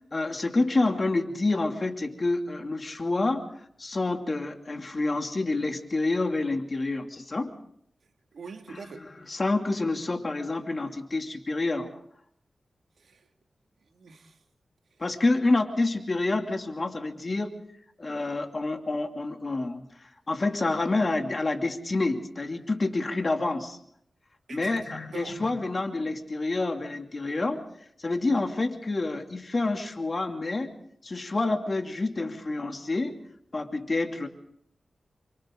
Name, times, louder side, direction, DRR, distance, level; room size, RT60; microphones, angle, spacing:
voice 1, 0.1-3.5 3.8-7.5 9.3-11.9 15.0-17.6 18.0-19.9 20.3-23.8 24.5-27.6 28.0-30.7 31.0-33.2 33.5-34.3, left 2 dB, 40° left, 2.6 m, -28 dB
voice 2, 8.3-9.1 13.0-13.3 13.9-14.4 24.5-25.4, right 5 dB, 80° right, 2.2 m, -43 dB
28.5 x 25.0 x 3.8 m
cardioid pair, 70°, 0 cm